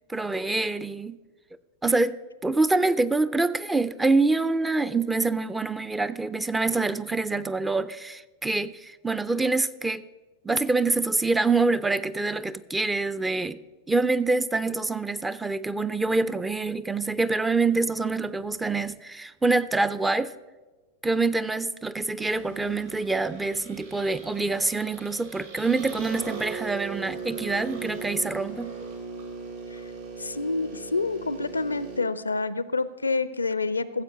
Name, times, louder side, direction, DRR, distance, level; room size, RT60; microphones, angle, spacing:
voice 1, 0.1-1.2 1.8-10.0 10.4-13.6 13.9-20.3 21.0-28.7, right 3 dB, 10° right, 16 dB, 0.4 m, -26 dB
sound 1, 22.2-32.0, right 5 dB, 60° right, 3.1 m, -39 dB
voice 2, 30.2-34.0, left 3 dB, 80° left, 16 dB, 0.4 m, -28 dB
15.0 x 7.6 x 5.4 m, 1.3 s
figure-of-eight pair, 90°, 0 cm